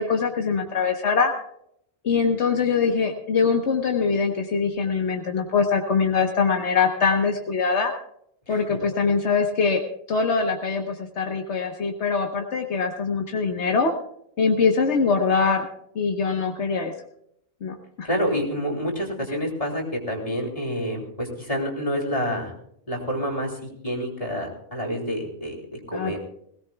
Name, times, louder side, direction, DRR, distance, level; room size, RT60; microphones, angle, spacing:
voice 1, 0.0-1.3 2.0-7.9 8.5-13.9 14.4-15.7 15.9-16.9 17.6-18.1 25.9-26.2, left 5 dB, 80° left, 2 dB, 1.5 m, -23 dB
voice 2, 18.0-22.5 22.9-26.2, equal, 30° left, 1 dB, 3.3 m, -28 dB
21.0 x 17.0 x 2.3 m, 0.71 s
omnidirectional pair, 1.1 m